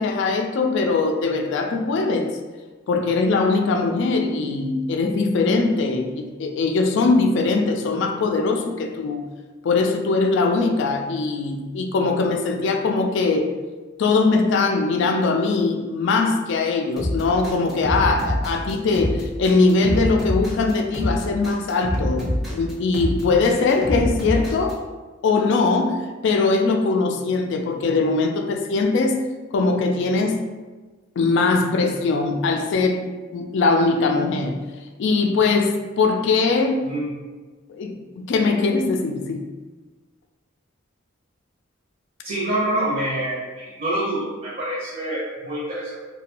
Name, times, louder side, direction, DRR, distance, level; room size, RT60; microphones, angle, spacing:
voice 1, 0.0-2.3 2.9-9.2 9.6-13.5 14.0-24.8 25.2-29.2 29.5-30.5 31.2-33.0 33.3-34.6 35.0-36.8 37.7-39.4, left 3 dB, 60° left, 4 dB, 0.3 m, -21 dB
sound 1, 17.0-24.7, left 1 dB, ahead, 0.6 m, -25 dB
voice 2, 36.8-37.1 42.2-45.9, right 1 dB, 45° right, -7 dB, 0.7 m, -26 dB
2.5 x 2.2 x 2.8 m, 1.3 s
head